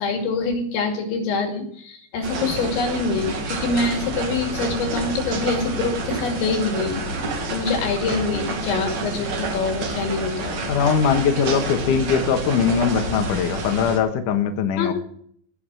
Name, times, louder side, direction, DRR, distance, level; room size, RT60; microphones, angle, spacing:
voice 1, 0.0-7.0 7.5-10.7 14.8-14.9, left 4 dB, 80° left, 3 dB, 4.8 m, -25 dB
sound 1, 2.2-14.0, right 2 dB, 50° right, 2.8 m, -29 dB
voice 2, 10.7-14.9, left 7 dB, 65° left, 6 dB, 2.2 m, -21 dB
18.0 x 6.8 x 7.5 m, 0.62 s
omnidirectional pair, 5.2 m